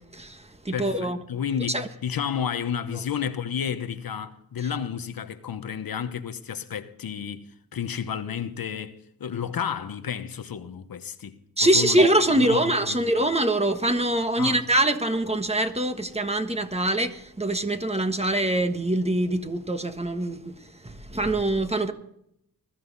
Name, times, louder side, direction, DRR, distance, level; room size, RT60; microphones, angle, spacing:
voice 1, 0.1-1.2 1.7-1.9 11.6-20.5 20.8-21.9, right 1 dB, 15° right, 1.4 m, -24 dB
voice 2, 0.7-11.4 11.7-13.1 14.4-14.6, left 8 dB, 75° left, 1.1 m, -31 dB
20.5 x 13.5 x 4.1 m
wide cardioid pair, 110°, 36 cm